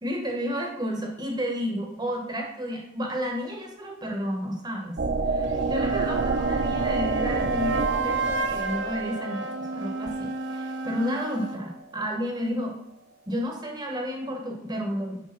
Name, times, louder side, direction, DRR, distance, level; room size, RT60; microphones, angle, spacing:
voice 1, 0.0-5.0 5.2-9.5 9.7-12.8 13.3-15.2, equal, 20° right, 1 dB, 1.2 m, -31 dB
sound 1, 5.0-11.6, right 3 dB, 50° right, 0.5 m, -29 dB
sound 2, 5.4-11.6, right 3 dB, 70° right, 0.9 m, -32 dB
5.1 x 5.0 x 5.9 m, 0.88 s
head